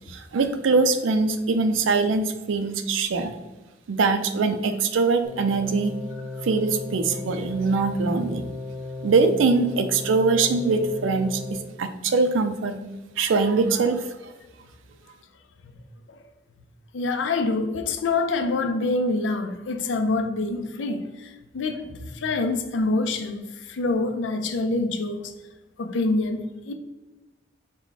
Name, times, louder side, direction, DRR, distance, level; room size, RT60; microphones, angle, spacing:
voice 1, 0.1-3.4 3.9-5.9 6.4-8.4 9.0-12.8 13.2-14.0, right 4 dB, 85° right, 9 dB, 0.4 m, -22 dB
sound 1, 5.2-11.5, left 3 dB, 10° right, 0.7 m, -35 dB
voice 2, 16.9-25.3 25.8-26.7, left 3 dB, 75° left, 7 dB, 0.4 m, -26 dB
4.7 x 2.2 x 3.9 m, 1.1 s
head